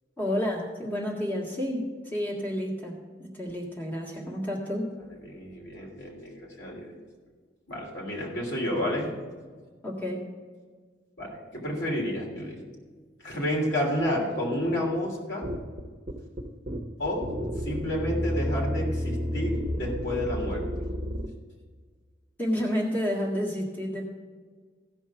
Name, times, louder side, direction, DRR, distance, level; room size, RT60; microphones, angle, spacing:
voice 1, 0.2-4.8 9.8-10.2 22.4-24.1, equal, 10° left, -3 dB, 1.8 m, -30 dB
voice 2, 5.2-6.9 7.7-9.1 11.2-12.6 13.2-15.5 17.0-17.2 17.6-20.7, left 1 dB, 75° left, -2 dB, 3.1 m, -30 dB
sound 1, 15.4-21.3, equal, 30° right, 1.0 m, -31 dB
15.5 x 5.4 x 5.9 m, 1.5 s
head